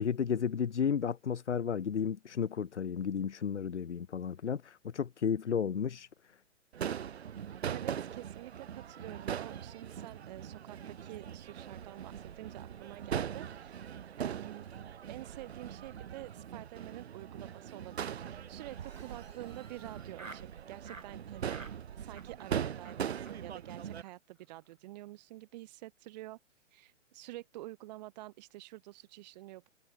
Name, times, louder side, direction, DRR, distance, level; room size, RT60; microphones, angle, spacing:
voice 1, 0.0-6.1, left 7 dB, 65° left, 1.8 m, -33 dB
Crowd / Fireworks, 6.7-24.0, right 8 dB, 55° right, 2.0 m, -41 dB
voice 2, 7.7-21.6 21.9-26.4 26.7-29.7, right 17 dB, 35° right, 1.7 m, -48 dB
Laughter, 18.7-20.5 20.8-21.1 21.4-21.8 22.1-22.5 22.8-23.0 23.3-23.4 23.6-23.7 24.0-24.1 24.4-24.7, right 3 dB, 90° right, 2.8 m, -52 dB
figure-of-eight pair, 125°, 38 cm